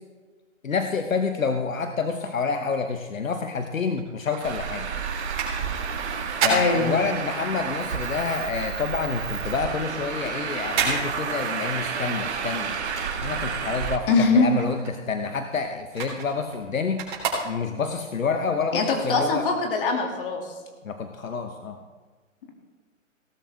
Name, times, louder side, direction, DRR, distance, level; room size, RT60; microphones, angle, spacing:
voice 1, 0.6-4.9 6.4-12.8 13.2-17.0 17.4-19.4 20.8-21.8, left 5 dB, 80° left, 6 dB, 1.1 m, -28 dB
sound 1, 3.9-7.6 7.9-13.9 14.2-18.0 18.5-18.6, right 5 dB, 35° right, 4.0 m, -32 dB
Traffic noise roadway noise, 4.4-14.0, right 6 dB, 55° right, 1.8 m, -30 dB
voice 2, 6.5-6.9 14.1-14.5 18.7-20.4, left 4 dB, 40° left, 2 dB, 2.7 m, -22 dB
17.5 x 12.5 x 3.5 m, 1.4 s
hypercardioid pair, 140°, 39 cm